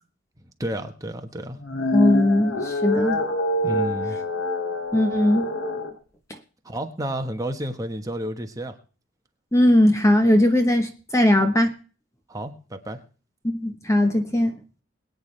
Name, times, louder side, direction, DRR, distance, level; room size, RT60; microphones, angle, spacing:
voice 1, 0.6-1.6 3.6-4.2 6.6-8.8 12.3-13.0, right 1 dB, 15° right, 1.3 m, -31 dB
sound 1, 1.5-5.9, left 1 dB, 85° left, 2.5 m, -26 dB
voice 2, 1.9-3.2 4.9-5.5 9.5-11.7 13.4-14.5, left 1 dB, 15° left, 1.1 m, -19 dB
22.0 x 9.1 x 3.3 m
head